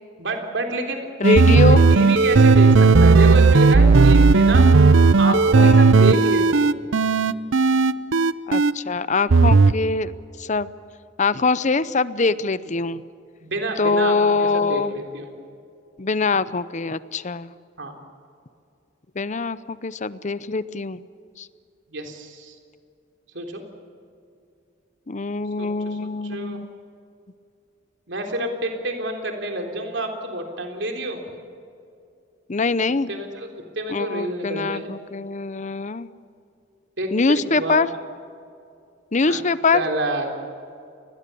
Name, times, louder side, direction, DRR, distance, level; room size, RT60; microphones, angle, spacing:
voice 1, 0.2-4.7 5.2-6.8 13.4-15.3 17.8-18.0 21.9-22.6 23.3-23.6 25.6-26.6 28.1-31.2 33.1-33.5 33.8-34.9 37.0-37.1 37.5-37.9 39.3-39.4 39.7-40.3, right 1 dB, 70° right, 3 dB, 3.6 m, -28 dB
voice 2, 1.2-1.8 5.2-5.9 8.5-10.1 10.4-10.7 11.2-13.0 13.8-14.9 16.0-17.5 19.1-21.0 21.4-21.5 25.1-26.7 32.5-33.1 33.9-36.1 37.1-37.9 39.1-39.8, left 4 dB, 40° left, 16 dB, 0.7 m, -23 dB
sound 1, 1.2-8.7 9.3-9.7, right 4 dB, 90° right, 0.7 m, -14 dB
29.0 x 20.5 x 7.0 m, 2.5 s
head